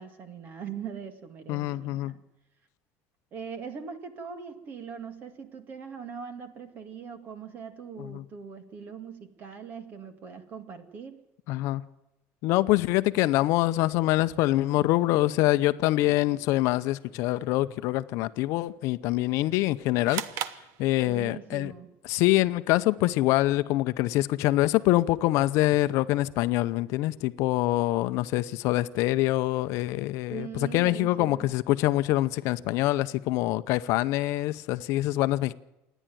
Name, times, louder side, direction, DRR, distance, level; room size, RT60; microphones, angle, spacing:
voice 1, 0.0-2.2 3.3-11.2 21.0-22.0 30.3-31.5, right 6 dB, 35° right, 2.0 m, -41 dB
voice 2, 1.5-2.1 8.0-8.2 11.5-11.8 12.4-20.2 20.8-21.7 22.0-35.5, left 17 dB, 60° left, 0.7 m, -25 dB
sound 1, 20.1-21.5, right 10 dB, 60° right, 1.0 m, -36 dB
27.5 x 10.0 x 9.3 m
cardioid pair, 170°, 6 cm